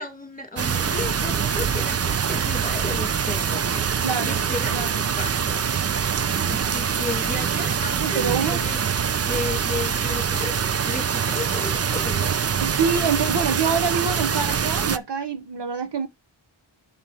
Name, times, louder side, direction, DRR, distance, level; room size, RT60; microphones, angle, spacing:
voice 1, 0.0-5.9 6.4-8.8 9.3-12.3, left 3 dB, 15° left, 2.1 m, -34 dB
sound 1, 0.6-15.0, right 7 dB, 35° right, 0.4 m, -24 dB
voice 2, 4.0-4.5 4.7-5.1 8.0-8.6 12.6-16.1, right 6 dB, 55° right, 0.9 m, -26 dB
7.1 x 5.3 x 4.8 m
wide cardioid pair, 65°, 49 cm